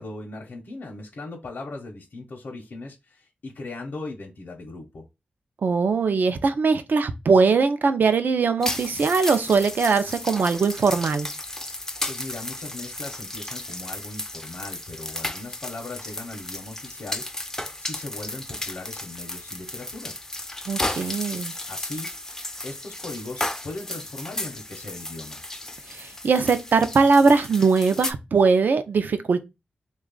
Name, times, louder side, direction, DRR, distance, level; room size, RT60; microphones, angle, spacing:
voice 1, 0.0-5.0 11.6-17.2 17.8-20.1 21.7-22.1 22.6-25.4, left 2 dB, 65° left, 0.7 m, -38 dB
voice 2, 5.6-11.3 20.7-21.5 25.9-29.5, right 4 dB, 65° right, 0.5 m, -21 dB
sound 1, 8.6-28.1, left 1 dB, 15° left, 0.4 m, -34 dB
3.1 x 2.3 x 3.7 m
wide cardioid pair, 110°, 3 cm